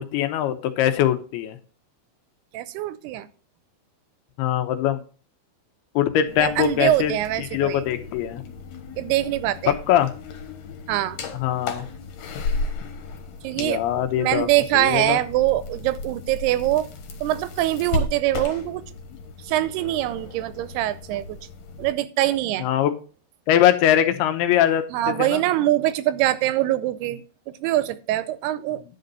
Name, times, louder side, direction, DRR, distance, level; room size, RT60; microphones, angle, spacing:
voice 1, 0.0-1.6 4.4-5.0 6.0-7.1 7.4-8.4 9.9-10.1 11.4-11.8 13.5-14.5 14.7-15.2 22.6-22.9 23.5-25.4, left 11 dB, 85° left, 2.9 m, -22 dB
voice 2, 2.5-3.3 6.4-7.8 9.0-9.8 10.9-11.2 13.4-13.8 14.2-16.9 17.2-18.8 19.4-21.4 21.8-22.7 24.9-28.8, right 14 dB, 90° right, 2.7 m, -23 dB
sound 1, 6.3-21.9, left 3 dB, 65° left, 2.9 m, -34 dB
10.5 x 4.0 x 6.7 m
omnidirectional pair, 4.5 m